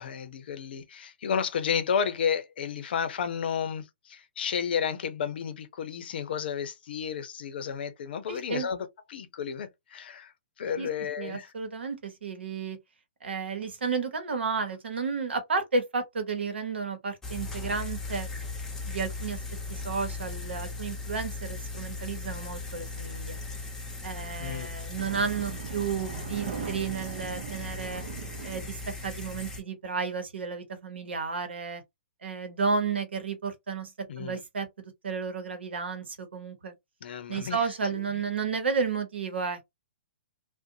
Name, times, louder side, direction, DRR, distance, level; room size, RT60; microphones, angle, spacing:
voice 1, 0.0-10.3 10.6-11.5 24.4-24.7 34.1-34.4 37.0-37.6 37.9-38.2, left 7 dB, 65° left, 0.6 m, -32 dB
voice 2, 8.3-8.7 10.8-10.9 11.2-12.8 13.2-18.3 18.8-19.4 19.7-23.4 24.0-28.0 28.4-31.8 32.2-33.9 34.2-34.7 35.0-36.7 37.3-39.7, right 5 dB, 80° right, 0.9 m, -32 dB
sound 1, 17.2-29.6, left 3 dB, 10° left, 0.8 m, -38 dB
sound 2, 25.0-29.5, right 6 dB, 55° right, 0.6 m, -40 dB
2.6 x 2.1 x 2.6 m
hypercardioid pair, 125°, 6 cm